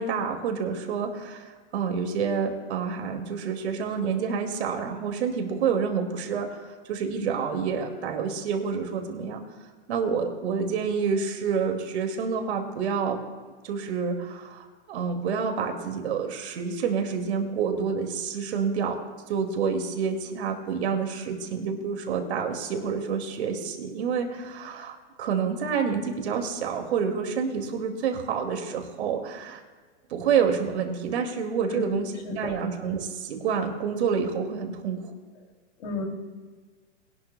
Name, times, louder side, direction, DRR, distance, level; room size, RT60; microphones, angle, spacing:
voice 1, 0.0-9.4 9.9-13.2 13.6-19.0 19.3-29.6 30.1-35.0, right 6 dB, 65° right, 4 dB, 2.4 m, -28 dB
voice 2, 31.7-32.5 35.8-36.1, left 3 dB, 70° left, 2 dB, 3.1 m, -33 dB
21.0 x 11.5 x 2.3 m, 1.5 s
hypercardioid pair, 140°, 35 cm